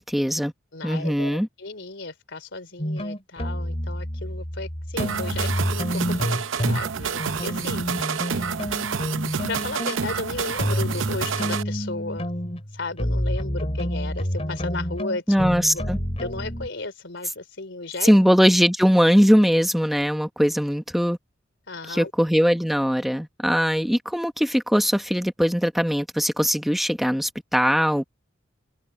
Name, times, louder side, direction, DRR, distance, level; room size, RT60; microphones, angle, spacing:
voice 1, 0.0-0.5 0.8-1.5 15.3-16.0 18.0-21.2 21.9-28.0, equal, ahead, 1.3 m, -20 dB
voice 2, 0.7-7.9 8.3-8.6 9.5-12.3 12.7-15.4 15.7-15.9 16.2-18.1 21.7-22.1, left 3 dB, 65° left, 3.9 m, -34 dB
sound 1, 2.8-6.9 7.2-16.7, equal, 30° left, 3.6 m, -29 dB
sound 2, 5.0-11.6, right 6 dB, 85° right, 0.7 m, -29 dB
head